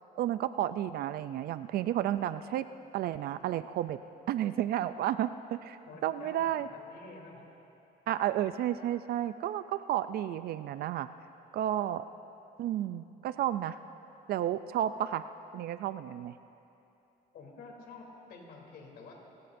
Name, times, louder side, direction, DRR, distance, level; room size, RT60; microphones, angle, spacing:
voice 1, 0.2-2.7 2.9-4.0 4.3-6.7 8.1-11.1 11.5-12.1 12.6-13.8 14.3-15.3 15.5-16.3, right 12 dB, 65° right, 13 dB, 0.4 m, -32 dB
voice 2, 5.8-7.4 17.3-19.1, left 3 dB, 65° left, 0 dB, 3.2 m, -50 dB
29.5 x 15.0 x 2.6 m, 2.9 s
cardioid pair, 110°, 17 cm